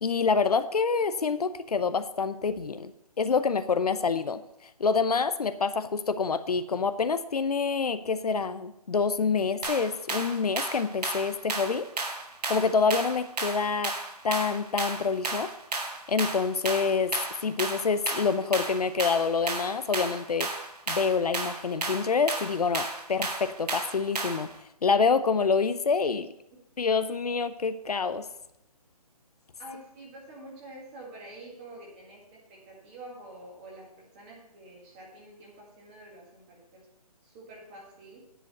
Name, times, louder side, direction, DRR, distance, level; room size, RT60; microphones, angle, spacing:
voice 1, 0.0-2.9 3.2-4.4 4.8-11.9 12.5-13.9 14.2-15.5 16.1-17.1 17.4-20.5 20.9-24.5 24.8-26.3 26.8-28.2, left 5 dB, 75° left, 12 dB, 0.8 m, -27 dB
sound 1, 9.6-24.5, right 3 dB, 85° right, 1.8 m, -33 dB
voice 2, 29.6-36.9 37.2-38.2, right 1 dB, 15° right, -2 dB, 1.9 m, -47 dB
10.0 x 5.0 x 7.9 m, 0.81 s
hypercardioid pair, 170°, 20 cm